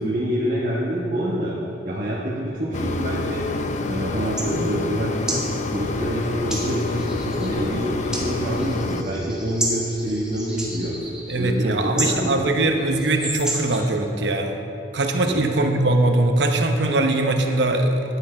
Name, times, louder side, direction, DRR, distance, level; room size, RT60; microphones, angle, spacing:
voice 1, 0.0-1.6 1.8-3.5 3.8-5.2 5.7-11.0 11.4-12.4 15.2-15.5, equal, 50° right, -6 dB, 1.3 m, -26 dB
Mechanisms, 2.7-9.0, left 3 dB, 45° left, 0.5 m, -27 dB
sound 1, 4.2-14.0, right 1 dB, 5° right, 1.7 m, -33 dB
voice 2, 11.3-14.6 14.9-18.0, right 2 dB, 85° right, 4 dB, 0.9 m, -21 dB
10.5 x 8.8 x 4.4 m, 2.9 s
head